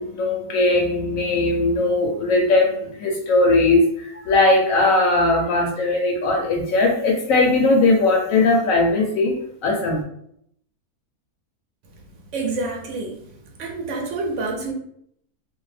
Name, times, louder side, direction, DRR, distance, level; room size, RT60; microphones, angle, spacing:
voice 1, 0.0-10.0, left 2 dB, 70° left, 1 dB, 0.9 m, -19 dB
voice 2, 12.3-13.2 13.6-14.7, right 3 dB, 65° right, 1 dB, 0.9 m, -27 dB
2.6 x 2.1 x 3.2 m, 0.70 s
omnidirectional pair, 1.6 m